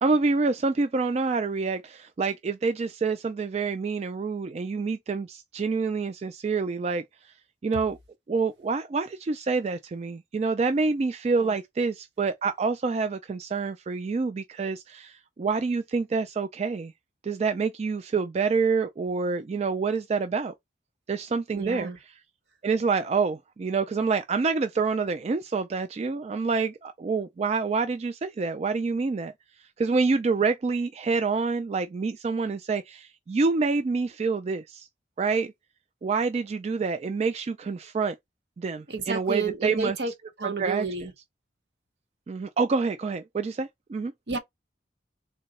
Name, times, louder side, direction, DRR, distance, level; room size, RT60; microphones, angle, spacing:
voice 1, 0.0-7.3 7.6-8.0 8.3-16.9 17.2-20.5 21.1-21.9 22.6-29.3 29.6-34.9 35.2-35.5 36.0-38.2 38.6-39.9 40.4-40.9 42.3-44.1, right 4 dB, 35° right, 0.3 m, -27 dB
voice 2, 21.5-22.0 38.9-40.1 40.4-41.1 44.3-44.4, right 4 dB, 70° right, 1.0 m, -31 dB
3.8 x 2.2 x 4.0 m
head